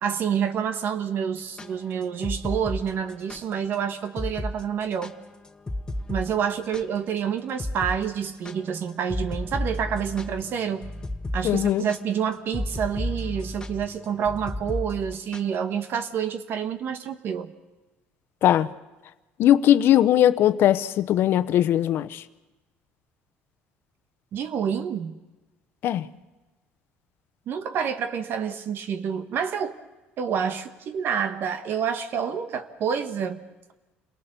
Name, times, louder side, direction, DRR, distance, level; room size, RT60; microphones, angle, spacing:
voice 1, 0.0-5.1 6.1-10.9 11.3-17.5 24.3-25.2 27.5-29.7 30.2-33.4, right 7 dB, 55° right, 1.4 m, -28 dB
sound 1, 1.4-3.4 3.7-3.8 4.2-4.5 4.8-7.2 7.6-8.0 8.2-15.5, left 1 dB, 20° left, 1.2 m, -33 dB
voice 2, 11.4-11.9 18.4-18.7 19.4-22.2 25.8-26.1, left 11 dB, 65° left, 0.9 m, -20 dB
27.5 x 18.5 x 6.9 m
cardioid pair, 100°, 4 cm